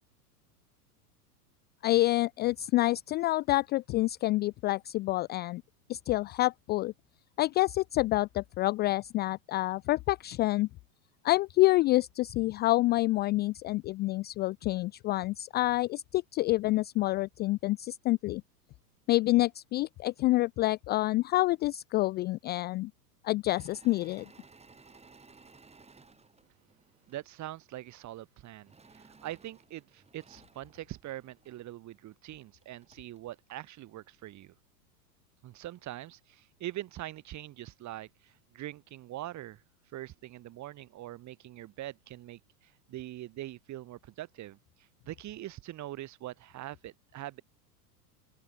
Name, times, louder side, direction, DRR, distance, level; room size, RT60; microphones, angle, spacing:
voice 1, 1.8-5.6 5.9-6.9 7.4-10.7 11.2-18.4 19.1-22.9 23.2-24.3, left 18 dB, 25° left, 0.4 m, -27 dB
Engine / Mechanisms, 23.5-27.2 28.7-31.6 32.3-32.4 32.6-33.2, right 4 dB, 15° right, 7.3 m, -58 dB
voice 2, 27.1-34.5 35.4-39.6 39.9-44.6 45.0-47.4, right 14 dB, 35° right, 2.5 m, -43 dB
open air
hypercardioid pair, 110°, 48 cm